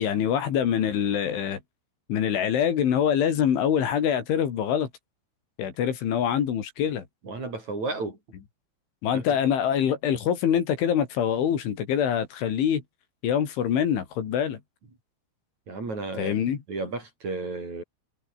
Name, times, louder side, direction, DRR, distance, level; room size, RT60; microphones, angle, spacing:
voice 1, 0.0-1.6 2.1-4.9 5.6-7.1 9.0-12.8 13.2-14.6 16.2-16.6, left 9 dB, 70° left, 5.4 m, -24 dB
voice 2, 7.2-8.2 9.1-9.4 15.7-16.4 16.7-17.8, right 3 dB, 35° right, 7.6 m, -33 dB
omnidirectional pair, 5.7 m